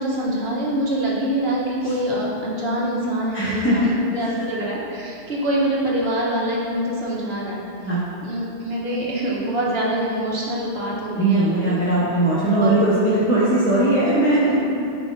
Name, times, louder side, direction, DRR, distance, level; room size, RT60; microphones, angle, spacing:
voice 1, 0.0-7.6 8.2-11.7 12.5-12.8 14.5-14.6, right 1 dB, 60° right, -5 dB, 1.4 m, -25 dB
voice 2, 3.3-3.9 7.9-8.0 11.2-14.5, right 1 dB, 10° left, -10 dB, 0.8 m, -19 dB
10.0 x 5.2 x 2.6 m, 2.7 s
omnidirectional pair, 1.2 m